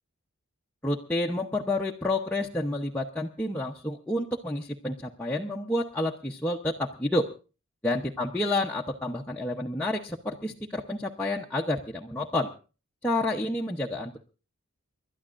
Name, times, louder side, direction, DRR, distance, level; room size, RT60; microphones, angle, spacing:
voice 1, 0.8-7.3 7.8-12.5 13.0-14.2, left 1 dB, 5° left, -2 dB, 0.8 m, -29 dB
30.0 x 12.5 x 2.5 m, 0.34 s
head